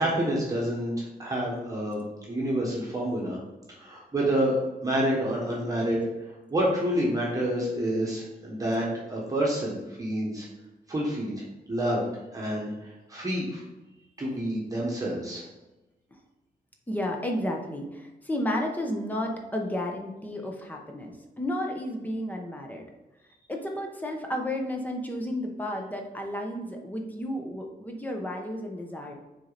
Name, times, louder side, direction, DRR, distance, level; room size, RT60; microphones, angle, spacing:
voice 1, 0.0-3.4 3.8-4.6 4.8-6.0 6.5-10.5 10.9-11.4 11.7-12.0 12.3-13.6 14.2-15.4, right 1 dB, 20° right, -5 dB, 1.3 m, -28 dB
voice 2, 16.9-22.8 23.5-29.1, left 1 dB, 10° left, 1 dB, 0.8 m, -32 dB
6.4 x 4.2 x 4.0 m, 1.1 s
wide cardioid pair, 160°, 16 cm